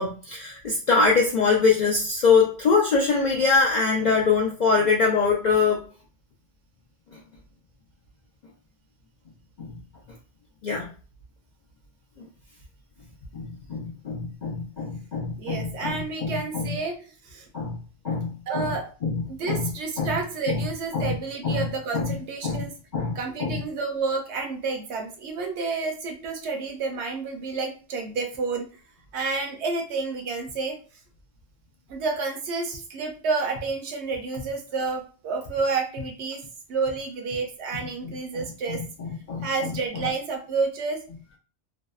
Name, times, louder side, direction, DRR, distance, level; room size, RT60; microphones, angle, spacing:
voice 1, 0.0-5.8 9.6-9.7 10.6-10.9 13.3-16.7 17.5-17.8 18.0-18.7 19.0-19.2 19.5-19.7 20.0-20.1 20.5-20.6 20.9-21.1 21.4-21.6 21.9-22.1 22.4-22.6 22.9-23.6 38.0-39.5, left 4 dB, 65° left, -2 dB, 0.4 m, -24 dB
voice 2, 15.3-17.0 17.2-17.5 18.5-18.9 19.3-22.7 23.1-28.7 29.1-30.8 31.9-36.4 36.7-38.8 39.4-41.0, right 4 dB, 70° right, 3 dB, 0.9 m, -30 dB
2.6 x 2.0 x 2.3 m, 0.37 s
omnidirectional pair, 1.2 m